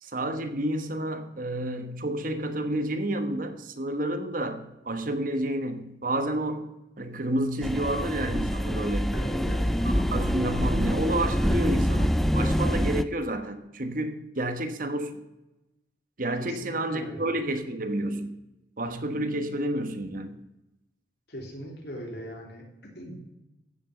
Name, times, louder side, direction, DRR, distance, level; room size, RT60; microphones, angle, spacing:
voice 1, 0.0-6.7 7.0-9.2 9.8-15.2 16.2-18.4 18.8-20.4, right 1 dB, 50° right, 8 dB, 1.2 m, -30 dB
sound 1, 7.6-13.0, equal, ahead, 0.4 m, -25 dB
voice 2, 9.1-9.8 16.4-17.3 21.3-23.2, equal, 65° left, 2 dB, 3.1 m, -40 dB
15.0 x 7.0 x 7.1 m, 0.95 s
head